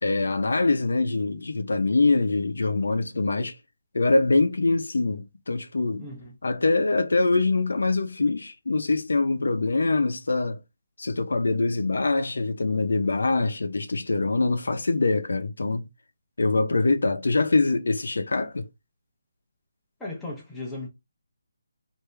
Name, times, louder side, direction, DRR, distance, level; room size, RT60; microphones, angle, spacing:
voice 1, 0.0-3.5 3.9-6.0 6.4-10.6 11.0-15.8 16.4-18.6, left 3 dB, 75° left, 0.7 m, -24 dB
voice 2, 5.9-6.3 20.0-20.9, left 2 dB, 5° left, 0.7 m, -36 dB
3.4 x 2.7 x 3.2 m
hypercardioid pair, 175°, 0 cm